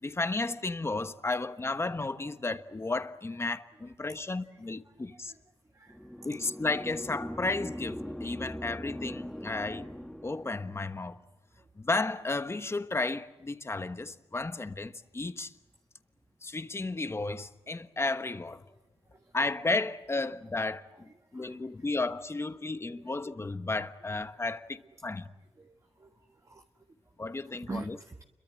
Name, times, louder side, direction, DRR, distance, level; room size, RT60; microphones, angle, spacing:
voice 1, 0.0-5.3 6.2-9.9 10.2-11.2 11.8-15.5 16.4-18.6 19.3-25.3 27.2-28.0, left 3 dB, 25° left, 1.2 m, -33 dB
voice 2, 5.7-6.1 19.1-19.3 21.3-21.6 23.0-23.1 25.6-26.1 26.4-26.6 27.5-28.2, right 3 dB, 30° right, 1.4 m, -44 dB
sound 1, 5.9-10.8, equal, 5° left, 1.3 m, -40 dB
30.0 x 23.0 x 7.8 m
wide cardioid pair, 115°, 11 cm